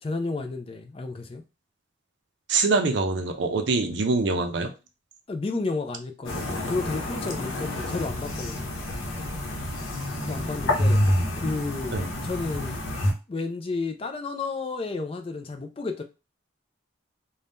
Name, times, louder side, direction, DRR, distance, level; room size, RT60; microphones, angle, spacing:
voice 1, 0.0-1.4 5.3-8.7 10.2-11.0 11.4-12.8 13.3-16.0, left 3 dB, 30° left, 0.3 m, -32 dB
voice 2, 2.5-4.7 11.9-12.1, right 3 dB, 60° right, 0.5 m, -24 dB
sound 1, 6.2-13.1, left 1 dB, 85° left, 0.8 m, -28 dB
2.6 x 2.2 x 3.4 m
head